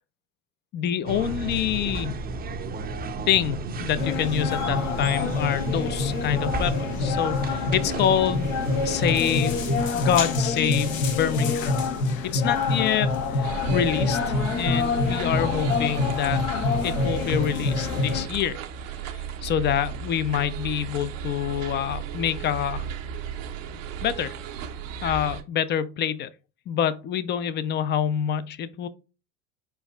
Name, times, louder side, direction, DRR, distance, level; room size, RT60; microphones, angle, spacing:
voice 1, 0.7-2.2 3.3-6.7 7.0-8.5 8.8-9.6 9.9-11.8 12.2-16.4 16.8-18.6 19.1-22.9 24.0-24.3 25.0-26.3 26.7-28.9, left 9 dB, 30° left, 0.4 m, -26 dB
sound 1, 1.1-9.9, right 3 dB, 25° right, 0.6 m, -33 dB
sound 2, 4.0-18.3, left 4 dB, 75° left, 0.9 m, -26 dB
sound 3, 13.4-25.4, right 7 dB, 70° right, 0.8 m, -35 dB
4.7 x 4.5 x 2.2 m
hypercardioid pair, 80°, 40 cm